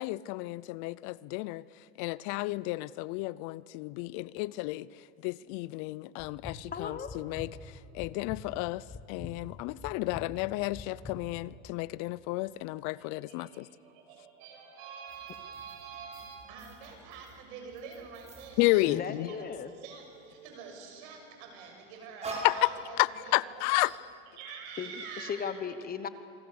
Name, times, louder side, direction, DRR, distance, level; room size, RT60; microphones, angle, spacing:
voice 1, 0.0-1.6 2.0-4.9 5.2-7.5 7.9-13.7 18.6-19.3 22.4-22.7 23.0-23.9, left 20 dB, 55° left, 0.6 m, -31 dB
sound 1, 6.2-11.5, left 3 dB, 10° left, 1.7 m, -46 dB
voice 2, 6.7-7.1 18.8-19.7 24.8-26.1, left 6 dB, 25° left, 1.1 m, -36 dB
voice 3, 12.9-23.6 24.3-25.5, right 6 dB, 65° right, 7.4 m, -46 dB
sound 2, 15.1-19.3 19.6-20.8 21.6-23.3 23.7-24.0, right 2 dB, 20° right, 5.9 m, -46 dB
27.5 x 25.0 x 7.0 m
supercardioid pair, 125°, 36 cm